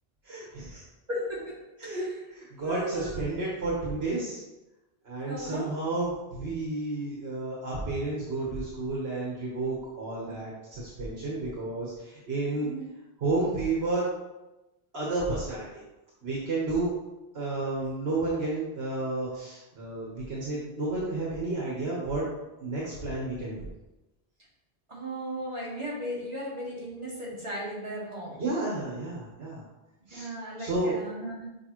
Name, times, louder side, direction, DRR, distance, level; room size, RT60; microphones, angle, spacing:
voice 1, 0.2-0.8 1.8-2.0 2.3-4.4 5.0-12.7 13.2-14.1 14.9-15.8 16.2-16.9 17.3-22.2 22.6-23.6 28.3-29.6 30.1-30.3 30.6-31.0, right 2 dB, 70° right, -5 dB, 1.4 m, -31 dB
voice 2, 1.1-1.5 1.8-2.1 2.6-3.2 5.3-5.7 10.2-10.3 12.5-12.8 24.9-28.3 30.1-31.5, equal, 30° right, -7 dB, 2.0 m, -36 dB
6.8 x 4.9 x 3.0 m, 1.0 s
omnidirectional pair, 1.1 m